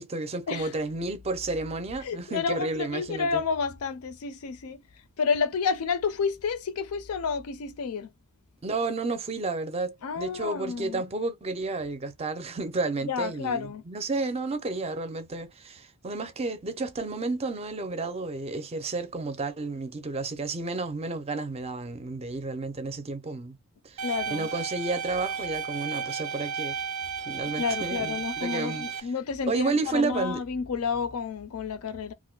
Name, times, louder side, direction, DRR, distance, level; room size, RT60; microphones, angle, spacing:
voice 1, 0.0-3.4 8.6-23.6 23.8-26.8 27.3-29.1 29.5-30.4, right 3 dB, 30° right, 0.4 m, -31 dB
voice 2, 2.0-4.8 5.2-8.1 10.0-11.0 13.0-13.8 24.0-24.5 27.6-32.1, left 5 dB, 85° left, 0.5 m, -30 dB
sound 1, 24.0-29.0, right 6 dB, 85° right, 0.5 m, -33 dB
2.5 x 2.1 x 3.7 m
head